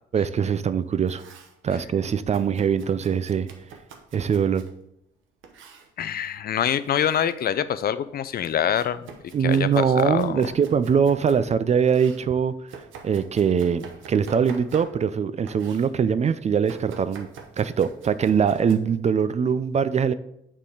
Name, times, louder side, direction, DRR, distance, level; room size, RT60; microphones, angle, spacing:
voice 1, 0.1-1.2 1.6-3.5 4.1-4.6 9.3-12.5 13.0-17.3 17.6-20.1, right 7 dB, 35° right, 12 dB, 0.4 m, -22 dB
Domestic sounds home sounds, 0.8-1.6 2.3-4.8 5.4-5.9 6.7-7.3 7.7-11.5 11.9-15.2 15.5-15.9 16.7-18.8, right 5 dB, 75° right, 0.9 m, -46 dB
voice 2, 6.0-9.1 9.4-10.4, left 9 dB, 50° left, 14 dB, 0.4 m, -25 dB
6.8 x 3.7 x 4.7 m, 0.78 s
cardioid pair, 90°, 20 cm